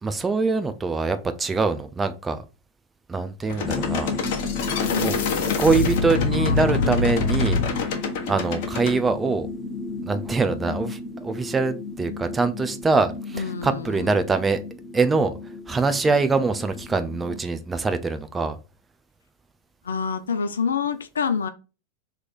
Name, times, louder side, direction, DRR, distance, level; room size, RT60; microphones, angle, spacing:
voice 1, 0.0-2.4 3.1-4.1 5.0-5.1 5.6-7.9 8.3-9.5 10.0-14.6 14.9-15.3 15.7-18.6, right 4 dB, 15° right, 0.5 m, -24 dB
sound 1, 3.5-9.0, left 4 dB, 50° left, 1.1 m, -25 dB
sound 2, 3.6-17.4, left 3 dB, 25° left, 0.7 m, -33 dB
voice 2, 4.8-5.6 6.4-6.8 13.3-14.1 19.8-21.5, left 6 dB, 80° left, 0.5 m, -28 dB
3.1 x 3.1 x 4.0 m
figure-of-eight pair, 95°, 0 cm